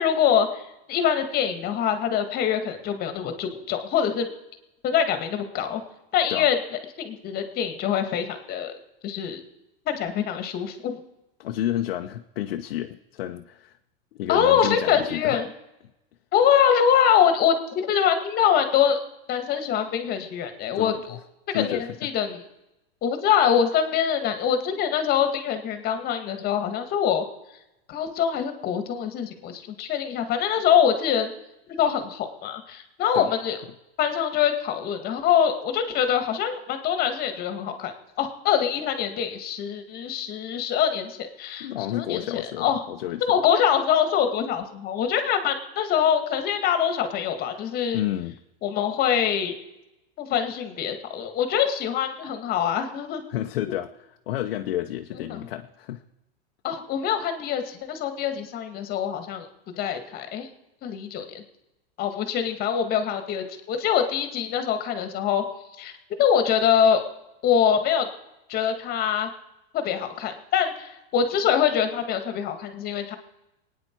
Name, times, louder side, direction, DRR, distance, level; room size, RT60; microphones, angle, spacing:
voice 1, 0.0-4.3 4.8-5.8 6.1-6.6 7.0-8.8 9.0-9.4 9.9-11.0 14.3-15.5 16.3-19.0 19.3-21.2 21.5-22.4 23.0-27.3 27.9-31.3 31.8-33.6 34.0-42.8 43.2-48.0 48.6-49.5 50.2-53.2 55.3-55.4 56.6-59.5 59.7-60.5 60.8-61.4 62.0-65.4 65.8-65.9 66.2-67.0 67.4-68.1 68.5-69.3 69.7-73.2, left 8 dB, 30° left, 8 dB, 1.8 m, -24 dB
voice 2, 11.4-13.8 14.1-15.4 20.8-21.2 21.5-22.1 33.1-33.3 41.6-43.3 47.9-48.4 53.3-56.0, left 13 dB, 80° left, 4 dB, 0.9 m, -30 dB
24.5 x 9.6 x 4.6 m, 0.94 s
supercardioid pair, 150°, 29 cm